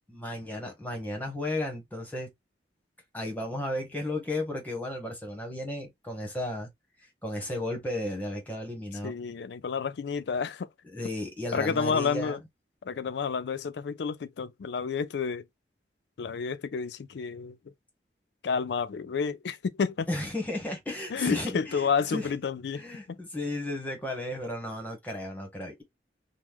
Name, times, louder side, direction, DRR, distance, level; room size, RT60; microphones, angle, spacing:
voice 1, 0.1-2.3 3.1-6.7 7.2-9.2 10.9-12.4 20.1-22.3 22.7-25.8, left 1 dB, 10° left, 1.0 m, -34 dB
voice 2, 9.0-10.7 11.5-12.4 12.9-15.4 16.2-17.6 18.4-20.1 21.1-23.2, left 6 dB, 75° left, 0.4 m, -30 dB
3.0 x 2.1 x 3.4 m
head